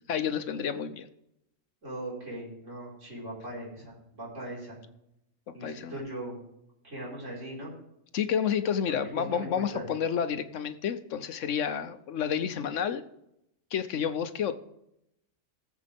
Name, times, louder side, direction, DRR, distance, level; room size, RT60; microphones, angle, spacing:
voice 1, 0.1-1.1 5.5-6.0 8.1-13.0 13.7-14.5, left 8 dB, 70° left, 11 dB, 1.1 m, -30 dB
voice 2, 1.8-4.8 5.5-6.4 6.8-7.7 9.1-9.8, right 1 dB, 65° right, -5 dB, 5.2 m, -39 dB
18.5 x 7.5 x 3.5 m, 0.80 s
omnidirectional pair, 1.4 m